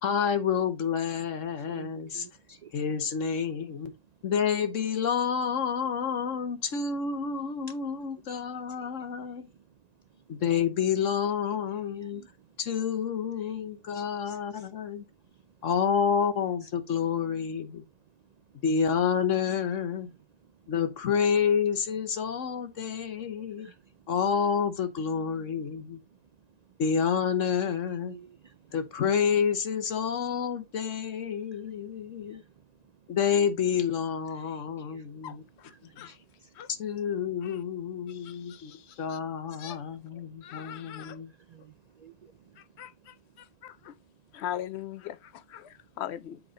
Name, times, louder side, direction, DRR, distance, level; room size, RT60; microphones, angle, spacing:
voice 1, 0.0-2.2 2.7-3.9 4.2-9.5 10.3-12.2 12.6-15.0 15.6-17.8 18.6-20.1 20.7-23.7 24.1-26.0 26.8-28.1 28.7-32.4 33.1-35.4 36.0-36.1 36.7-38.7 39.0-41.3, left 7 dB, 85° left, 1.4 m, -29 dB
voice 2, 1.5-2.8 6.7-6.8 8.7-10.4 11.7-12.6 13.3-15.6 16.6-16.7 18.1-18.6 20.0-20.7 23.4-24.1 26.1-26.8 28.0-28.8 31.5-33.1 34.3-35.4 35.7-36.7 38.1-39.2 39.5-40.6 41.4-43.5 43.8-44.1, right 6 dB, 80° right, 0.3 m, -56 dB
voice 3, 35.2-36.2 36.5-36.7 37.4-37.6 38.1-39.2 39.6-39.8 40.4-41.2 42.6-43.9 44.3-46.4, left 11 dB, 65° left, 0.8 m, -41 dB
7.7 x 4.7 x 3.7 m
omnidirectional pair, 1.3 m